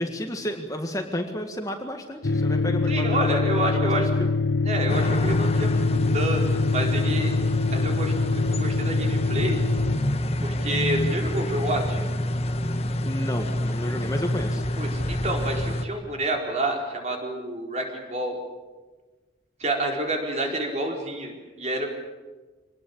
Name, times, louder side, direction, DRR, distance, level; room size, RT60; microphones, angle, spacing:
voice 1, 0.0-3.9 4.2-4.3 13.0-14.6, equal, 20° left, 4 dB, 1.7 m, -31 dB
sound 1, 2.2-10.0, left 4 dB, 75° left, 0.7 m, -24 dB
voice 2, 2.9-4.1 4.6-7.3 7.7-9.6 10.4-12.0 14.8-18.4 19.6-21.9, right 1 dB, 40° right, 1 dB, 4.5 m, -29 dB
sound 2, 4.9-15.9, left 1 dB, 35° left, 1.3 m, -27 dB
25.0 x 19.5 x 8.7 m, 1.3 s
head